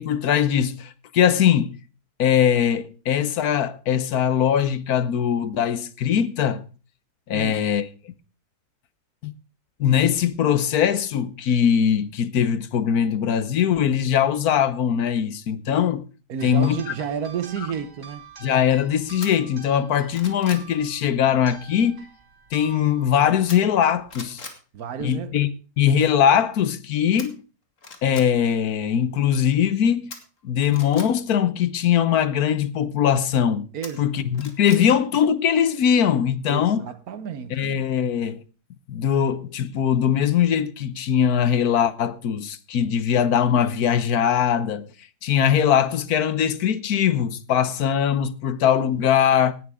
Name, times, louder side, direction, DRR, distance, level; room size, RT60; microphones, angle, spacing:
voice 1, 0.0-1.8 2.2-6.6 7.3-8.1 9.2-9.3 9.8-16.0 16.4-16.8 18.4-22.1 22.5-24.4 25.0-25.5 25.8-27.4 28.0-30.1 30.4-33.7 34.0-36.9 37.5-38.4 38.9-44.9 45.2-49.5, left 8 dB, 80° left, 1.4 m, -21 dB
voice 2, 16.3-18.2 24.7-25.3 33.7-34.1 34.8-34.9 36.5-37.7, right 7 dB, 75° right, 1.4 m, -31 dB
sound 1, 16.4-24.3, right 6 dB, 55° right, 2.4 m, -47 dB
sound 2, 19.2-19.3 19.8-20.7 23.5-23.8 24.1-24.6 27.2-27.3 27.8-28.3 30.1-31.1 33.8-34.8 35.2-35.3, left 3 dB, 55° left, 2.5 m, -39 dB
18.0 x 11.0 x 3.6 m
omnidirectional pair, 1.6 m